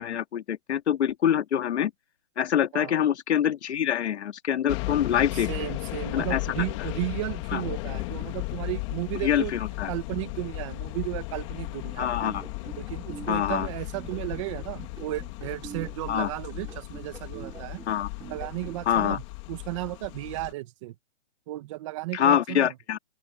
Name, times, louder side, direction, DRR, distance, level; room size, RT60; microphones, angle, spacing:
voice 1, 0.0-1.9 2.4-5.5 6.1-6.4 7.5-7.6 9.2-9.9 12.0-12.4 13.3-13.7 16.1-16.3 17.9-18.1 18.9-19.2 22.1-23.0, left 9 dB, 65° left, 2.1 m, -25 dB
sound 1, 4.7-20.5, left 22 dB, 25° left, 2.0 m, -36 dB
voice 2, 5.3-9.5 9.9-12.1 12.8-17.8 18.2-19.2 19.5-20.9 21.5-22.7, right 19 dB, 25° right, 1.4 m, -34 dB
sound 2, 12.0-18.8, right 8 dB, 10° right, 2.5 m, -45 dB
open air
hypercardioid pair, 165°, 37 cm